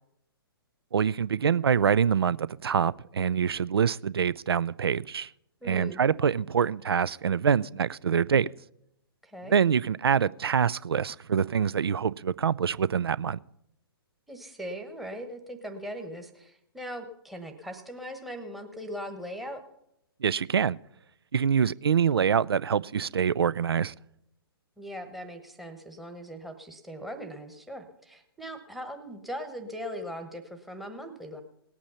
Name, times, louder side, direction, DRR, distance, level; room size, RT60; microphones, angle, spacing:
voice 1, 0.9-5.3 5.6-8.5 9.5-13.4 20.2-20.8 21.3-23.9, right 7 dB, 75° right, 0.4 m, -25 dB
voice 2, 5.6-6.0 9.2-9.6 14.3-19.6 24.8-31.4, equal, ahead, 1.2 m, -39 dB
18.0 x 8.7 x 5.6 m
figure-of-eight pair, 125°, 13 cm